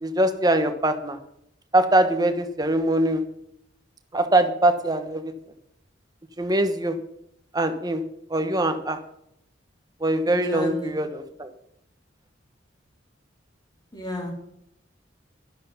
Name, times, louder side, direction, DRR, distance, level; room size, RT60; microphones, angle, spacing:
voice 1, 0.0-1.2 1.7-3.2 4.1-5.3 6.4-7.0 7.5-8.0 8.3-9.0 10.0-11.5, right 1 dB, 20° right, 8 dB, 1.2 m, -22 dB
voice 2, 10.3-10.9 13.9-14.3, left 1 dB, 20° left, 0 dB, 3.8 m, -32 dB
12.0 x 11.5 x 5.7 m, 0.75 s
head